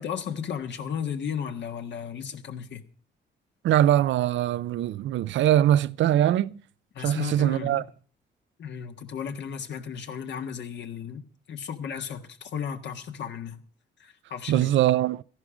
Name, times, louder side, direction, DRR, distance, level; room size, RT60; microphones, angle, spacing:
voice 1, 0.0-2.8 6.9-7.8 8.6-13.6 14.0-14.7, left 7 dB, 65° left, 1.5 m, -34 dB
voice 2, 3.6-6.6 7.0-7.8 14.5-15.2, right 12 dB, 70° right, 0.5 m, -22 dB
14.5 x 11.0 x 5.0 m
cardioid pair, 90°, 20 cm